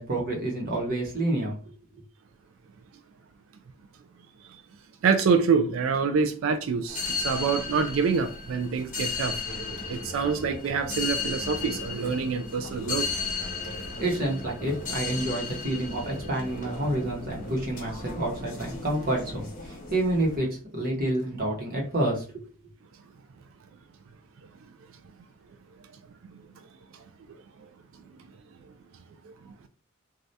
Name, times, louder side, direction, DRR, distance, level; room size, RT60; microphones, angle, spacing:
voice 1, 0.0-1.6 1.9-2.0 13.6-13.7 14.0-22.5, right 1 dB, 45° right, 0.9 m, -29 dB
voice 2, 5.0-9.4 9.9-13.1, right 5 dB, 65° right, 0.3 m, -26 dB
sound 1, 6.9-20.4, left 4 dB, 35° left, 1.0 m, -35 dB
2.6 x 2.4 x 3.2 m
head